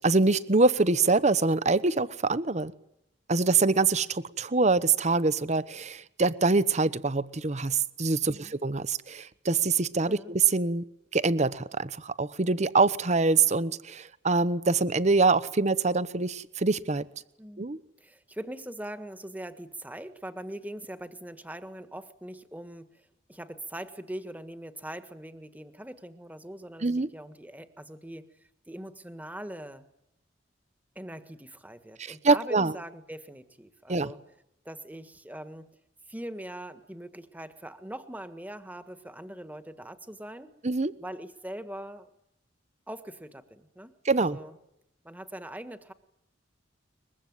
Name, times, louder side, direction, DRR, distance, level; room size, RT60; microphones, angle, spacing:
voice 1, 0.0-2.7 3.3-10.8 11.1-17.1 17.6-17.8 26.8-27.1 32.0-32.7 33.9-34.1 40.6-40.9 44.0-44.4, right 3 dB, 40° right, 16 dB, 0.9 m, -25 dB
voice 2, 18.0-23.0 23.3-28.3 28.7-29.9 30.9-34.2 34.6-35.7 36.1-40.5 41.0-42.1 42.9-44.6 45.0-45.9, right 1 dB, 10° right, 10 dB, 1.5 m, -42 dB
23.0 x 22.0 x 9.5 m, 0.82 s
head